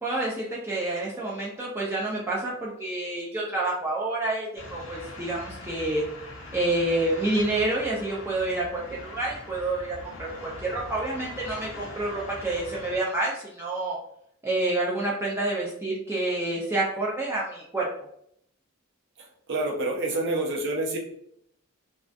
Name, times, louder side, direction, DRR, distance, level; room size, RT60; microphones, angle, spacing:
voice 1, 0.0-6.0 6.5-14.0 14.4-17.9, right 2 dB, 10° right, -5 dB, 0.3 m, -28 dB
sound 1, 4.6-13.0, left 2 dB, 60° left, 0.5 m, -42 dB
voice 2, 19.2-21.0, right 2 dB, 55° right, -1 dB, 0.6 m, -28 dB
2.2 x 2.2 x 2.5 m, 0.70 s
head